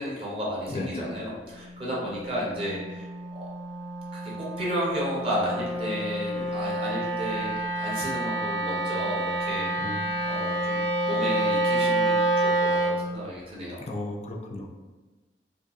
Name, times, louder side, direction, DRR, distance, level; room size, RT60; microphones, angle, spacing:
voice 1, 0.0-3.5 4.1-9.9 10.2-13.8, equal, 30° right, -5 dB, 0.5 m, -33 dB
voice 2, 0.7-1.1 9.8-10.1 13.9-14.7, left 2 dB, 35° left, 0 dB, 0.3 m, -34 dB
Wind instrument woodwind instrument, 1.5-13.1, right 1 dB, 80° right, 0.5 m, -28 dB
2.7 x 2.5 x 2.3 m, 1.2 s
head